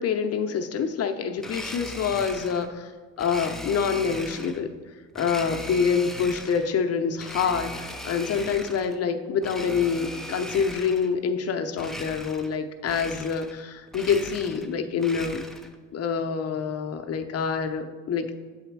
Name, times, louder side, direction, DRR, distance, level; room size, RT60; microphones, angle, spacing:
voice 1, 0.0-2.9 3.2-4.7 5.1-15.4 15.9-18.4, left 6 dB, 55° left, 7 dB, 0.6 m, -26 dB
Domestic sounds home sounds, 1.4-2.7 3.2-4.6 5.1-6.7 7.2-9.0 9.4-11.1 11.7-12.6 12.8-13.6 13.9-15.8, left 1 dB, ahead, 0.4 m, -38 dB
7.7 x 4.1 x 4.6 m, 1.5 s
cardioid pair, 115°, 29 cm